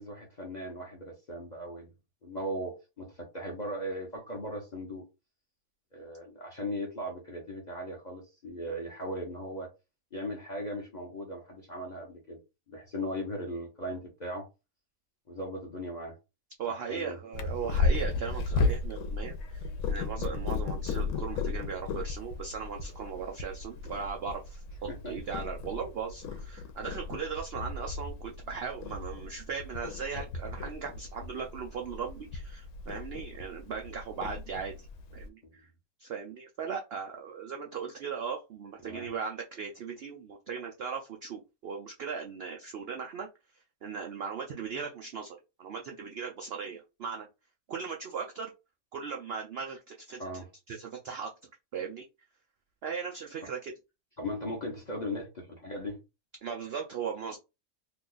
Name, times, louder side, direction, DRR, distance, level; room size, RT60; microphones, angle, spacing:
voice 1, 0.0-1.9 2.2-5.1 5.9-9.7 10.1-12.4 12.7-14.5 15.3-16.2 16.7-17.2 24.9-25.1 35.4-35.5 38.8-39.1 50.2-50.5 54.2-56.0, equal, 40° left, 0.7 m, -38 dB
voice 2, 16.6-34.9 35.1-35.7 36.0-43.3 43.8-47.3 47.7-48.5 48.9-51.3 51.7-52.0 52.8-53.7 56.4-57.4, right 6 dB, 80° right, 0.5 m, -38 dB
Purr, 17.3-35.3, left 3 dB, 75° left, 1.1 m, -34 dB
2.8 x 2.3 x 3.8 m
omnidirectional pair, 1.6 m